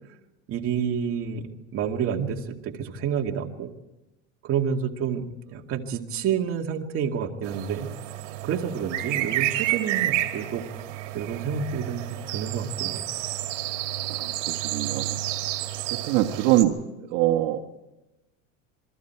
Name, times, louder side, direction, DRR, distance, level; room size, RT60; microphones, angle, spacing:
voice 1, 0.5-3.7 4.4-7.9 8.4-10.6 11.1-13.0, right 7 dB, 35° right, 3 dB, 2.2 m, -29 dB
sound 1, 7.4-16.6, right 14 dB, 85° right, 2.4 m, -30 dB
voice 2, 14.1-15.2 15.9-17.7, right 14 dB, 60° right, 5 dB, 1.6 m, -24 dB
28.5 x 22.5 x 4.6 m, 0.97 s
supercardioid pair, 140°, 37 cm